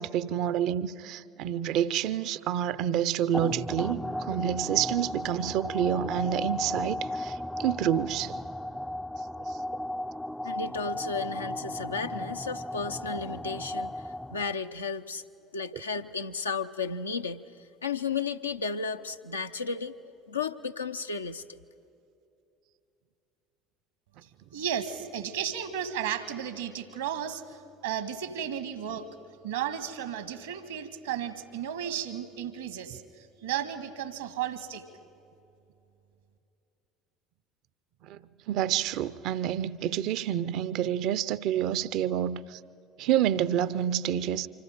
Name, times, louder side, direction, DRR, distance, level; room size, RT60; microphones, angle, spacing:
voice 1, 0.0-8.3 9.5-9.6 38.0-38.2 38.5-42.6 43.0-44.5, right 10 dB, 55° right, 0.6 m, -28 dB
sound 1, 3.3-14.7, left 1 dB, 5° left, 0.4 m, -35 dB
voice 2, 10.4-14.0 14.3-15.2 15.5-21.4, left 5 dB, 80° left, 0.6 m, -34 dB
voice 3, 24.5-29.0 29.4-34.8, right 9 dB, 70° right, 1.5 m, -34 dB
26.5 x 25.5 x 5.1 m
figure-of-eight pair, 65°, 0 cm